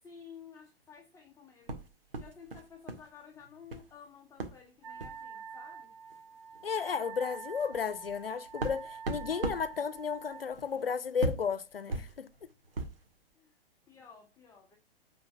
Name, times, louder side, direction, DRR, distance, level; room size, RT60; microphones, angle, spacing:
voice 1, 0.0-5.9 13.3-13.6 13.9-14.8, left 7 dB, 10° left, 1.1 m, -53 dB
sound 1, 1.7-3.1 3.3-3.9 4.4-4.6 4.9-5.2 6.1-6.2 6.5-6.7 7.2-13.1, right 2 dB, 65° right, 1.9 m, -39 dB
Wind instrument woodwind instrument, 4.8-10.5, right 5 dB, 30° right, 4.1 m, -46 dB
voice 2, 6.6-12.3, left 6 dB, 70° left, 0.8 m, -33 dB
9.6 x 4.5 x 5.6 m
figure-of-eight pair, 110°, 30 cm